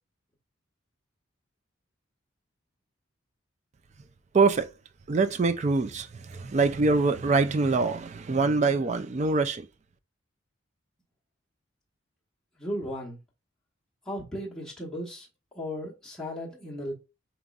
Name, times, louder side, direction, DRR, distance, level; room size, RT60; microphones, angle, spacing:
voice 1, 4.3-4.7 5.1-9.7, right 4 dB, 35° right, 0.3 m, -24 dB
voice 2, 12.6-13.2 14.1-15.3 15.5-16.9, equal, ahead, 1.0 m, -35 dB
5.0 x 3.0 x 2.4 m
head